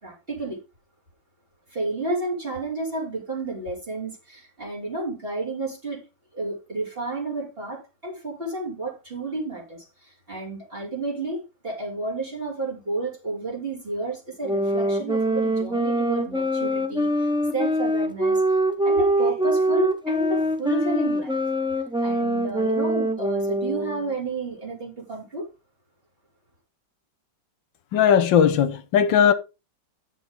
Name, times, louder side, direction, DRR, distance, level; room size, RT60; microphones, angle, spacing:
voice 1, 0.0-0.6 1.7-6.0 6.3-21.4 22.0-25.5, right 2 dB, 30° right, 3.9 m, -31 dB
sound 1, 14.4-24.1, right 1 dB, 5° right, 0.3 m, -24 dB
voice 2, 27.9-29.3, left 8 dB, 80° left, 1.6 m, -18 dB
9.7 x 7.1 x 3.9 m
omnidirectional pair, 2.0 m